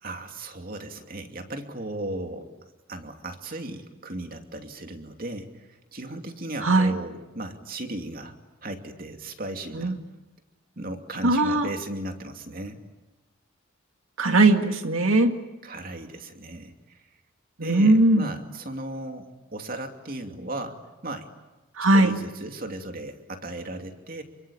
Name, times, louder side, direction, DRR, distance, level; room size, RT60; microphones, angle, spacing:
voice 1, 0.0-2.5 2.9-8.3 8.6-10.0 10.8-12.8 15.6-17.0 17.6-21.3 21.9-24.2, right 1 dB, 45° right, 5 dB, 2.7 m, -36 dB
voice 2, 6.6-6.9 9.8-10.0 11.2-11.7 14.2-15.3 17.6-18.3 21.8-22.1, right 2 dB, 80° right, 6 dB, 2.1 m, -19 dB
27.5 x 24.5 x 8.9 m, 1.1 s
head